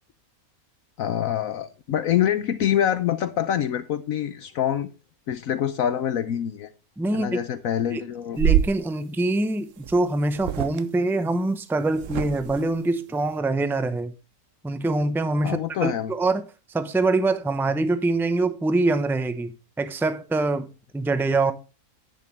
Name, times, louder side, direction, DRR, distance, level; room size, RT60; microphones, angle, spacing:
voice 1, 1.0-4.9 5.3-6.7 7.1-8.4 15.4-16.1, left 10 dB, 70° left, 1.1 m, -25 dB
voice 2, 7.0-7.4 7.9-8.0 8.4-14.1 14.6-16.4 16.7-19.5 19.8-21.5, right 2 dB, ahead, 0.6 m, -24 dB
sound 1, 8.4-8.8 9.8-10.0 10.3-10.8 11.9-12.6, right 10 dB, 65° right, 0.9 m, -24 dB
10.5 x 9.4 x 3.2 m
omnidirectional pair, 1.6 m